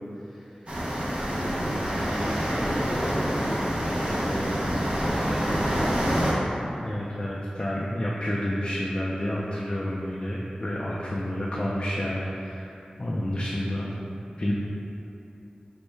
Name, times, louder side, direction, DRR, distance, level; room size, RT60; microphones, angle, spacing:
voice 1, 0.2-0.8 1.2-4.6 4.8-6.0 13.6-13.7, equal, ahead, -8 dB, 0.9 m, -34 dB
sound 1, 0.7-6.3, equal, 40° right, 0.7 m, -27 dB
voice 2, 6.4-12.7 13.0-13.9 14.4-14.5, left 1 dB, 35° left, -5 dB, 0.4 m, -30 dB
5.3 x 2.1 x 3.2 m, 2.9 s
wide cardioid pair, 55°, 3 cm